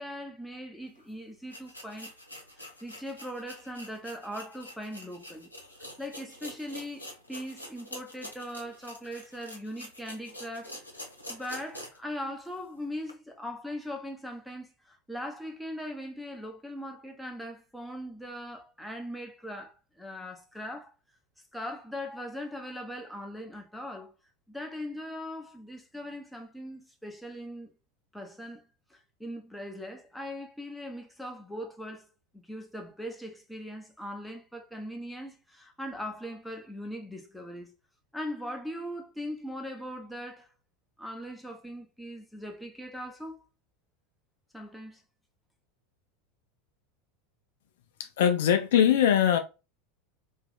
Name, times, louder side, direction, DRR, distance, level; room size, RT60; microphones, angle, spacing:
voice 1, 0.0-2.1 2.6-5.5 6.0-10.8 11.3-20.9 21.5-24.1 24.5-27.7 28.1-28.6 28.9-32.1 32.3-37.7 38.1-40.5 41.0-43.4 44.5-45.0, equal, ahead, 0.9 m, -40 dB
sound 1, 1.0-1.1 1.5-12.1 12.5-12.6 13.1-13.2, equal, 90° left, 0.9 m, -46 dB
voice 2, 48.0-49.4, left 9 dB, 60° left, 0.5 m, -22 dB
3.1 x 2.9 x 3.7 m
figure-of-eight pair, 80°, 0 cm